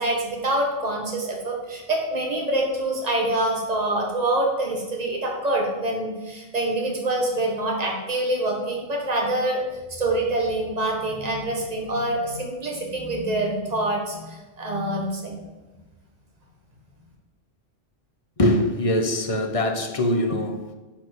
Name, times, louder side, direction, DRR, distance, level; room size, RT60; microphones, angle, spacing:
voice 1, 0.0-9.6 10.0-15.4, right 1 dB, 30° right, -1 dB, 1.8 m, -25 dB
voice 2, 18.4-20.7, left 1 dB, 30° left, 4 dB, 0.9 m, -23 dB
7.5 x 7.2 x 6.1 m, 1.2 s
omnidirectional pair, 1.3 m